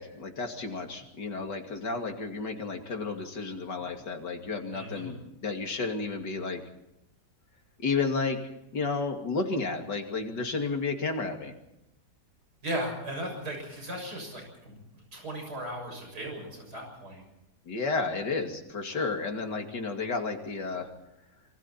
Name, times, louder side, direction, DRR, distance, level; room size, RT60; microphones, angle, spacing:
voice 1, 0.0-6.6 7.8-8.4 8.7-11.5 17.7-20.9, left 4 dB, 90° left, 3 dB, 3.2 m, -32 dB
voice 2, 4.7-5.1 12.6-14.8 15.1-17.2, right 1 dB, 70° right, 2 dB, 7.5 m, -37 dB
26.5 x 24.0 x 4.4 m, 0.86 s
omnidirectional pair, 1.8 m